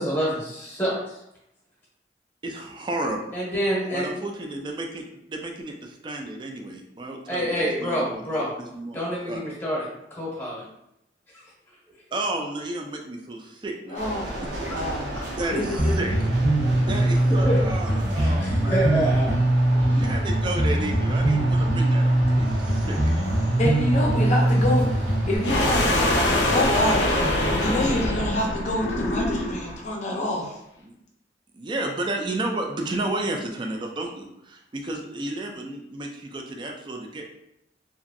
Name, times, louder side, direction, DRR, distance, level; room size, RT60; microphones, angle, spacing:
voice 1, 0.0-1.2 3.3-4.1 7.3-8.5 8.9-9.8 10.1-10.6 17.4-17.6 18.2-19.3 19.8-20.0, equal, 10° left, -5 dB, 0.8 m, -27 dB
voice 2, 2.4-3.2 3.9-9.4 12.1-14.0 15.4-16.3 16.8-19.0 19.9-23.0 30.8-31.0 31.5-37.3, right 2 dB, 25° right, 2 dB, 0.3 m, -32 dB
voice 3, 13.9-15.1 15.5-16.1 23.6-30.6, left 1 dB, 40° left, -1 dB, 0.5 m, -27 dB
sound 1, 13.9-26.2, right 1 dB, 85° right, 0.7 m, -35 dB
Bass guitar, 15.8-25.4, right 1 dB, 45° right, 0.7 m, -22 dB
sound 2, 25.4-29.7, left 1 dB, 85° left, 0.6 m, -23 dB
2.9 x 2.5 x 2.5 m, 0.82 s
head